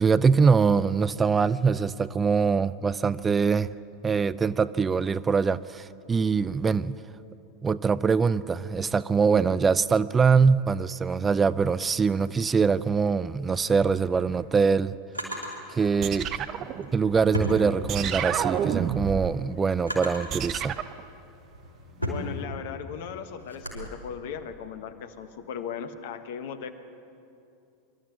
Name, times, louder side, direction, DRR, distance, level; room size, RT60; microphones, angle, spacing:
voice 1, 0.0-3.7 4.0-7.0 7.6-15.0 15.7-16.5 16.9-20.8, right 5 dB, 20° right, 0.4 m, -23 dB
Drawer open or close, 14.1-15.6 16.6-18.3 18.7-20.4 21.0-23.9, equal, 85° left, 4.6 m, -36 dB
sound 1, 16.0-17.4 17.9-19.4 20.3-21.0, right 9 dB, 40° right, 0.9 m, -30 dB
voice 2, 22.0-26.7, left 7 dB, 60° left, 1.3 m, -37 dB
24.0 x 13.0 x 9.3 m
figure-of-eight pair, 85°, 0 cm